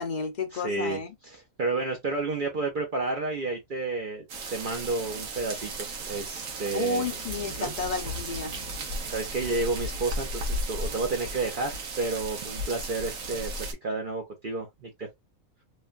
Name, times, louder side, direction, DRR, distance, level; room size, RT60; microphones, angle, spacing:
voice 1, 0.0-1.1 6.7-8.5, left 4 dB, 60° left, 0.4 m, -32 dB
voice 2, 0.5-4.2 4.5-7.1 7.6-7.7 9.0-13.5 13.8-15.1, right 3 dB, 55° right, 0.6 m, -31 dB
sound 1, 4.3-13.7, right 1 dB, 80° right, 1.2 m, -35 dB
3.1 x 2.1 x 2.4 m
omnidirectional pair, 1.4 m